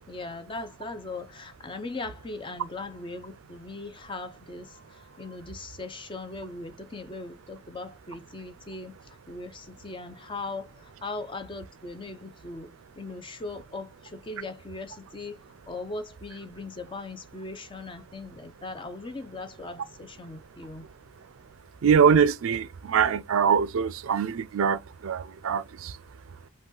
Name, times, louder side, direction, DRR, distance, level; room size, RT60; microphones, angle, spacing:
voice 1, 0.1-15.4 15.7-20.9, left 3 dB, 20° left, 0.5 m, -39 dB
voice 2, 21.8-25.9, right 7 dB, 65° right, 0.4 m, -23 dB
5.3 x 2.3 x 3.7 m
head